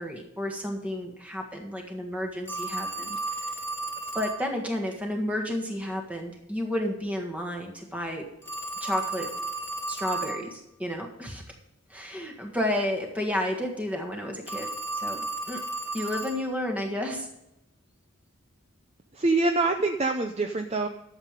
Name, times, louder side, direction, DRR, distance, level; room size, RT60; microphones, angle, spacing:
voice 1, 0.0-3.2 4.1-8.3 8.8-9.3 9.9-11.4 11.9-15.6 15.9-17.3, left 1 dB, 5° right, 2 dB, 1.6 m, -31 dB
Telephone, 2.5-4.4 8.4-10.5 14.4-16.4, right 2 dB, 10° left, 0.9 m, -33 dB
voice 2, 19.2-20.9, right 3 dB, 30° right, 6 dB, 0.5 m, -25 dB
12.0 x 7.4 x 5.2 m, 0.88 s
head